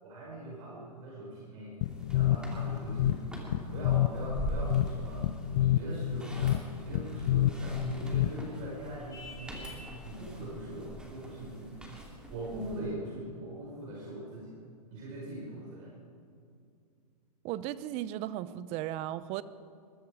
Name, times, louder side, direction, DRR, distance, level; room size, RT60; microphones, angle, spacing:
voice 1, 0.0-3.3 3.7-5.2 5.5-9.8 10.0-11.8 12.3-14.6 14.9-15.9, right 1 dB, 55° right, -4 dB, 5.2 m, -41 dB
sound 1, 1.8-8.7, left 12 dB, 45° left, 0.5 m, -29 dB
sound 2, 1.8-12.8, right 1 dB, 5° right, 2.7 m, -43 dB
Vehicle horn car horn honking, 9.1-9.9, left 2 dB, 15° left, 3.3 m, -47 dB
voice 2, 17.4-19.4, right 13 dB, 35° right, 16 dB, 0.6 m, -36 dB
21.5 x 12.5 x 4.9 m, 2.3 s
hypercardioid pair, 125°, 20 cm